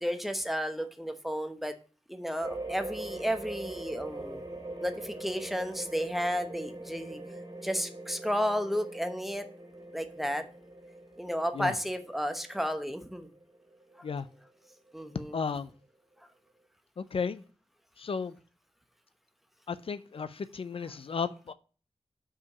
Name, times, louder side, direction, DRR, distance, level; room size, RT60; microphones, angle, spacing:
voice 1, 0.0-1.7 2.1-4.4 4.8-7.2 7.6-9.5 9.9-10.4 11.2-13.3 14.9-15.4, equal, ahead, 0.9 m, -32 dB
sound 1, 2.4-15.2, right 2 dB, 40° right, 2.6 m, -43 dB
voice 2, 15.3-15.7 17.0-17.4 18.0-18.3 19.7-21.5, left 5 dB, 65° left, 0.4 m, -34 dB
5.7 x 4.9 x 6.6 m
wide cardioid pair, 105°, 10 cm